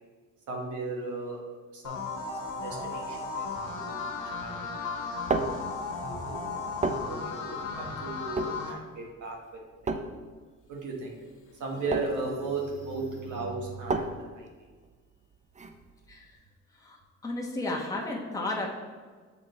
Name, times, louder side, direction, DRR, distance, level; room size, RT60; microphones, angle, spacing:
voice 1, 0.5-1.4 1.7-2.1 2.4-3.6 4.0-4.1 4.4-5.3 6.1-6.4 7.0-7.5 7.7-9.4 9.8-9.9 10.7-11.1 11.6-14.5, right 3 dB, 75° right, 0 dB, 1.3 m, -36 dB
sound 1, 1.8-8.7, left 4 dB, 85° left, 1.1 m, -35 dB
sound 2, 4.9-16.4, right 3 dB, 25° right, 0.5 m, -35 dB
sound 3, 10.4-10.5 11.0-14.1, right 4 dB, 45° left, 1.2 m, -47 dB
voice 2, 17.2-18.7, left 2 dB, 10° left, -2 dB, 1.0 m, -32 dB
7.0 x 3.7 x 3.9 m, 1.4 s
cardioid pair, 90°, 30 cm